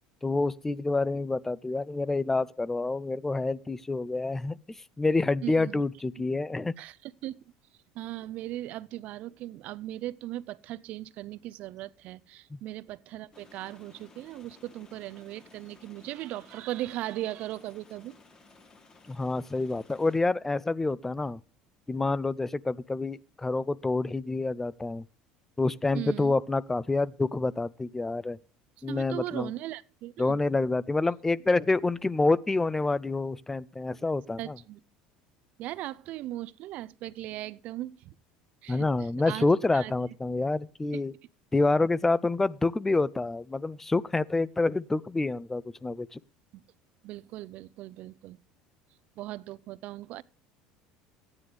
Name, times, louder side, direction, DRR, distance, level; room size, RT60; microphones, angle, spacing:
voice 1, 0.2-6.8 12.5-12.6 19.1-21.4 21.9-25.0 25.6-28.4 28.8-29.5 30.2-34.6 38.7-41.1 41.5-46.2, left 3 dB, 15° left, 0.4 m, -27 dB
voice 2, 5.4-5.8 6.8-7.4 7.9-18.2 25.9-26.3 28.9-30.4 34.4-34.8 35.6-38.1 38.6-38.9 39.3-39.9 46.5-46.6 47.0-48.4 49.2-50.2, right 15 dB, 60° right, 0.5 m, -38 dB
sound 1, 13.3-20.2, left 3 dB, 30° left, 1.3 m, -56 dB
13.0 x 9.6 x 3.3 m
supercardioid pair, 105°, 3 cm